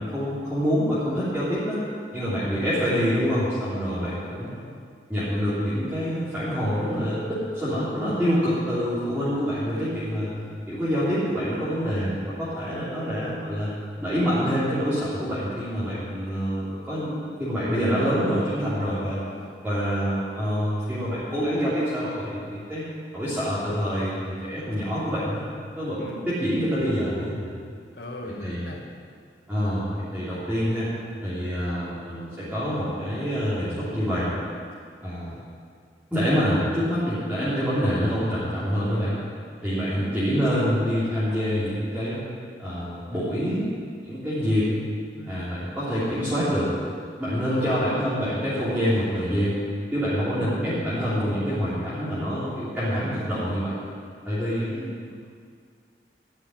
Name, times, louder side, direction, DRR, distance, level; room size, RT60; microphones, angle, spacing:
voice 1, 0.0-1.8 2.1-4.5 5.1-10.4 10.7-13.7 14.0-19.2 19.6-22.8 23.1-25.4 25.7-27.5 28.2-28.6 29.5-30.9 31.2-34.3 35.0-35.4 36.1-39.2 39.6-42.2 42.6-43.6 44.0-44.7 45.1-46.7 47.2-49.6 49.9-53.8 54.2-54.7, equal, 10° right, -13 dB, 3.2 m, -26 dB
voice 2, 4.0-4.8 18.9-20.1 26.0-26.3 27.9-28.8 35.3-35.4 39.6-40.1 45.9-46.4 47.5-48.1 50.4-50.7 54.6-55.1, left 2 dB, 70° left, 1 dB, 1.7 m, -40 dB
14.5 x 6.6 x 9.9 m, 2.2 s
head